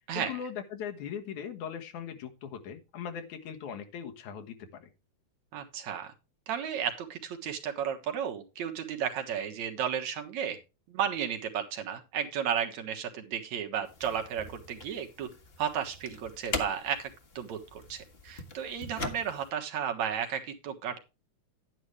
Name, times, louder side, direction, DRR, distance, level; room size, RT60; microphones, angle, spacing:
voice 1, 0.1-4.9, left 8 dB, 85° left, 6 dB, 2.8 m, -39 dB
voice 2, 5.5-6.1 6.5-10.6 10.9-15.3 15.6-17.1 17.4-21.0, right 8 dB, 75° right, 4 dB, 2.8 m, -33 dB
sound 1, 13.9-19.5, left 3 dB, 35° left, 0.9 m, -41 dB
11.0 x 9.7 x 3.2 m, 0.28 s
omnidirectional pair, 3.3 m